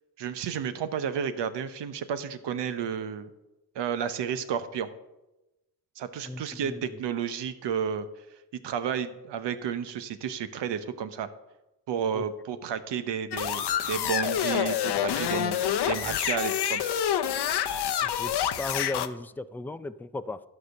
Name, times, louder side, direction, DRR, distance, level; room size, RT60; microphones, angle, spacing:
voice 1, 0.2-3.3 3.7-4.9 6.0-8.1 8.6-11.3 11.9-15.6 15.8-17.0, right 7 dB, 80° right, 11 dB, 0.9 m, -32 dB
voice 2, 6.3-6.9 12.1-12.2 18.0-20.4, left 2 dB, 5° left, 13 dB, 0.3 m, -36 dB
sound 1, 13.3-19.1, left 10 dB, 70° left, 0.7 m, -27 dB
12.0 x 5.0 x 6.5 m, 0.97 s
cardioid pair, 75°, 42 cm